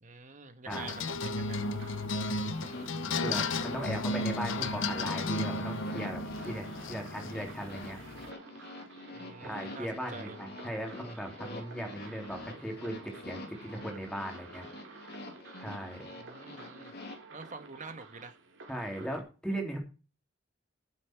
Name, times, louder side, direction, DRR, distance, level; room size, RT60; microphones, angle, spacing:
voice 1, 0.0-1.6 9.1-10.4 16.2-16.9 17.3-18.4, right 4 dB, 40° right, 1.6 m, -47 dB
sound 1, 0.7-8.3, left 2 dB, 75° left, 0.9 m, -34 dB
sound 2, 1.6-19.2, right 3 dB, 75° right, 2.9 m, -52 dB
sound 3, 2.4-17.1, left 2 dB, 55° left, 3.0 m, -46 dB
voice 2, 3.2-8.0 9.4-14.7 15.6-16.0 18.7-19.8, equal, 5° left, 3.5 m, -38 dB
13.5 x 7.7 x 4.7 m
head